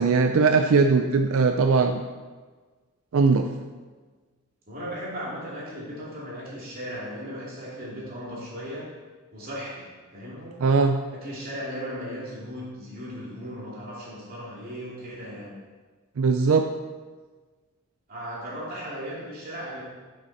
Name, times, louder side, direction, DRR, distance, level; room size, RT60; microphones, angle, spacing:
voice 1, 0.0-2.0 3.1-3.5 10.6-11.0 16.2-16.7, right 4 dB, 70° right, 6 dB, 0.4 m, -20 dB
voice 2, 4.7-8.9 9.3-10.6 11.1-15.6 18.1-19.8, equal, 45° right, -6 dB, 2.7 m, -37 dB
8.5 x 7.4 x 4.2 m, 1.4 s
head